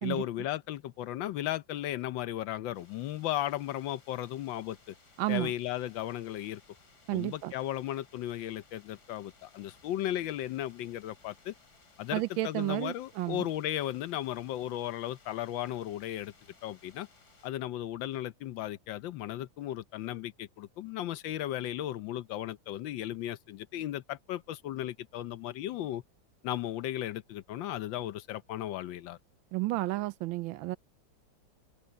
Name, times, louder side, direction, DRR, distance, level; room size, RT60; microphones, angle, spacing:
voice 1, 0.0-4.9 5.3-6.6 7.1-11.5 12.0-16.3 16.6-17.1 17.4-26.0 26.4-29.2, left 13 dB, 75° left, 1.4 m, -35 dB
sound 1, 2.7-17.5, left 4 dB, 55° left, 3.8 m, -62 dB
voice 2, 5.2-5.5 7.1-7.5 12.1-13.5 29.5-30.8, right 18 dB, 90° right, 1.4 m, -32 dB
open air
omnidirectional pair, 2.1 m